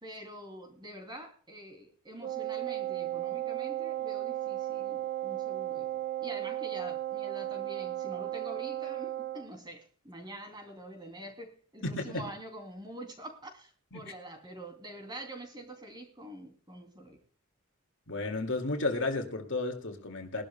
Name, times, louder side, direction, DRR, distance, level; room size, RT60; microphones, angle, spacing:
voice 1, 0.0-17.2, right 1 dB, 20° right, 2.8 m, -46 dB
Wind instrument woodwind instrument, 2.2-9.5, right 14 dB, 40° right, 0.7 m, -35 dB
voice 2, 11.8-12.3 13.9-14.1 18.1-20.4, left 2 dB, 55° left, 2.2 m, -33 dB
21.0 x 12.5 x 2.2 m
head